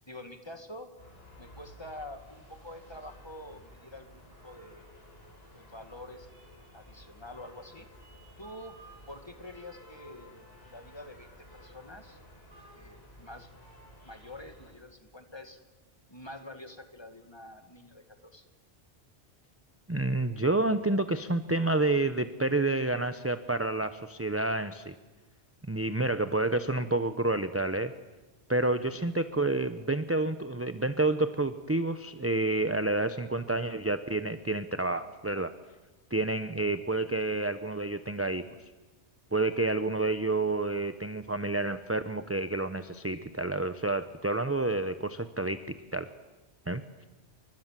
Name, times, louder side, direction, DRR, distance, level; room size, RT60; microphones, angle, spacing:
voice 1, 0.1-0.9 1.4-4.9 5.5-7.9 8.4-8.8 9.1-12.2 12.7-13.5 14.0-15.6 16.1-18.4 28.7-29.0, left 1 dB, 25° left, 7 dB, 2.2 m, -47 dB
sound 1, 1.0-14.7, equal, 65° left, 7.4 m, -53 dB
voice 2, 19.9-24.9 25.7-27.9 28.5-35.5 36.1-38.5 39.3-46.1 46.7-47.1, right 2 dB, 15° right, 10 dB, 0.8 m, -29 dB
29.0 x 24.5 x 7.6 m, 1.2 s
omnidirectional pair, 1.1 m